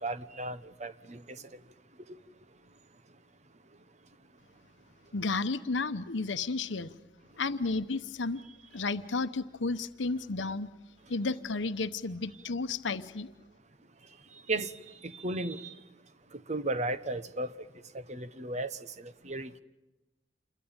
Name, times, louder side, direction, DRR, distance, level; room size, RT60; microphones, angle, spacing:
voice 1, 0.0-1.4 2.1-2.2 14.5-15.7 16.3-17.6 17.9-19.6, right 2 dB, 40° right, 1.0 m, -35 dB
voice 2, 5.1-6.9 7.4-8.4 8.7-10.7 11.1-13.3, left 3 dB, 80° left, 0.9 m, -32 dB
28.0 x 22.0 x 8.9 m
head